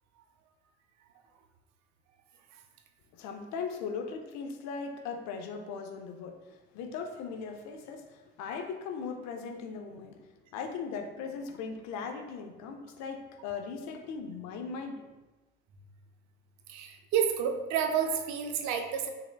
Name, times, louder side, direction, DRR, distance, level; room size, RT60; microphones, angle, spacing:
voice 1, 3.1-10.2 10.5-15.1, left 5 dB, 70° left, 5 dB, 0.6 m, -39 dB
voice 2, 16.7-19.1, right 7 dB, 70° right, 5 dB, 0.6 m, -30 dB
4.4 x 3.6 x 2.2 m, 1.1 s
hypercardioid pair, 55°, 29 cm